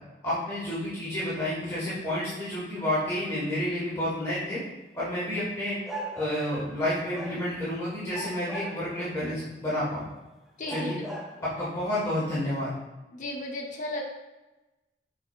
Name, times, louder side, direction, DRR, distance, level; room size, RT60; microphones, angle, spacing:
voice 1, 0.2-4.6 4.9-5.8 6.1-10.1 10.7-11.0 11.6-12.7, left 1 dB, 15° left, -9 dB, 1.1 m, -30 dB
sound 1, 4.3-4.4 5.8-6.8 7.1-7.7 8.1-9.1 9.8-9.9 10.6-11.5, right 1 dB, ahead, 0.5 m, -39 dB
voice 2, 10.6-10.9 13.1-14.0, left 1 dB, 45° left, -1 dB, 0.7 m, -34 dB
5.7 x 4.0 x 2.3 m, 1.1 s
head